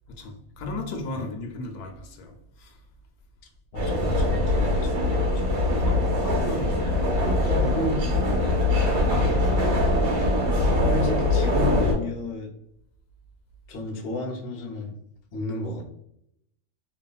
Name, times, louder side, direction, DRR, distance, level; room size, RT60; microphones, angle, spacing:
voice 1, 0.1-2.8 5.8-7.0 7.3-7.9 9.1-9.9, left 2 dB, 80° left, 1.1 m, -36 dB
voice 2, 3.7-5.8 7.7-9.1 10.9-12.5 13.7-15.0 15.3-15.9, left 2 dB, 60° left, 0.7 m, -33 dB
sound 1, 3.7-11.9, left 1 dB, 65° right, 1.5 m, -22 dB
3.3 x 2.2 x 2.3 m
omnidirectional pair, 1.6 m